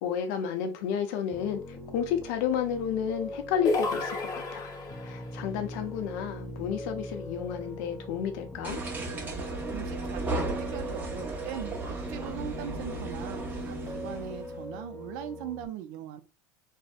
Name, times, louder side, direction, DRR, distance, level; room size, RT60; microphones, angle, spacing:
voice 1, 0.0-4.7 5.0-8.8, left 8 dB, 70° left, 0.6 m, -31 dB
Piano, 1.3-15.7, left 1 dB, 20° left, 0.5 m, -42 dB
sound 1, 3.7-5.2, left 3 dB, 40° left, 0.8 m, -30 dB
sound 2, 8.6-14.6, right 2 dB, 15° right, 0.9 m, -35 dB
voice 2, 9.7-16.2, right 10 dB, 65° right, 0.4 m, -40 dB
2.6 x 2.0 x 2.3 m
hypercardioid pair, 95°, 10 cm